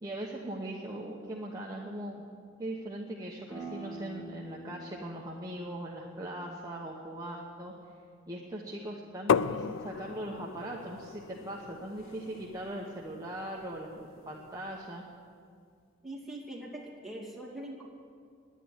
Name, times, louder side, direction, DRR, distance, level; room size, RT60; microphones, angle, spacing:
voice 1, 0.0-2.2 2.6-7.7 8.3-15.0, right 1 dB, 20° right, -3 dB, 1.0 m, -40 dB
sound 1, 3.5-8.9, right 2 dB, 15° left, 3.1 m, -47 dB
sound 2, 9.3-14.9, left 6 dB, 80° left, 0.4 m, -35 dB
voice 2, 16.0-17.9, right 1 dB, ahead, -5 dB, 2.5 m, -42 dB
11.0 x 9.3 x 10.0 m, 2.2 s
head